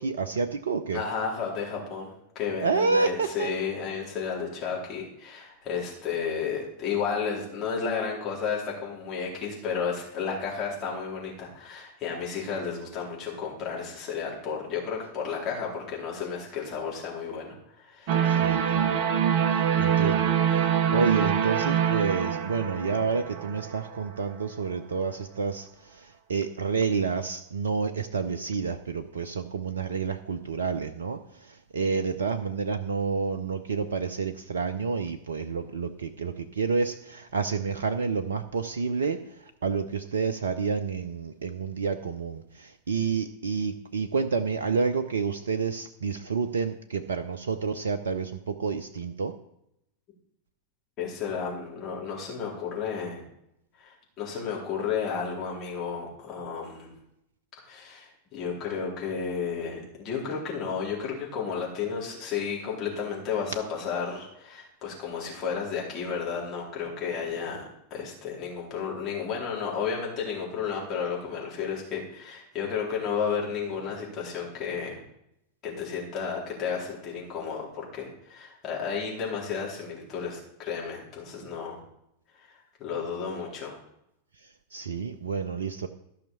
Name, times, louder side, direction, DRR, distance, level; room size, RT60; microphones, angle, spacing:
voice 1, 0.0-1.0 2.6-3.5 18.2-19.0 19.8-49.3 84.7-85.9, right 5 dB, 65° right, 9 dB, 0.6 m, -29 dB
voice 2, 0.9-18.2 51.0-53.2 53.8-56.9 57.7-75.0 75.6-81.8 82.4-82.5 82.8-83.7, left 6 dB, 35° left, -3 dB, 4.0 m, -32 dB
sound 1, 18.1-24.1, right 8 dB, 45° right, 1.0 m, -25 dB
14.0 x 5.8 x 5.5 m, 0.80 s
figure-of-eight pair, 90°, 0 cm